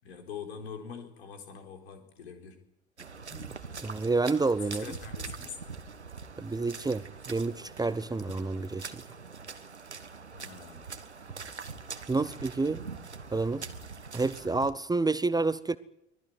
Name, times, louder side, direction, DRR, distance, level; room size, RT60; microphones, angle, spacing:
voice 1, 0.0-2.6 4.8-5.6 10.3-10.9 12.1-12.4, left 6 dB, 70° left, 4.2 m, -44 dB
sound 1, 3.0-14.7, right 5 dB, 85° right, 1.3 m, -43 dB
voice 2, 3.8-4.8 6.4-9.0 12.1-12.8 13.3-13.7 14.1-15.8, right 3 dB, 10° right, 0.9 m, -29 dB
24.0 x 18.5 x 9.5 m
figure-of-eight pair, 65°, 33 cm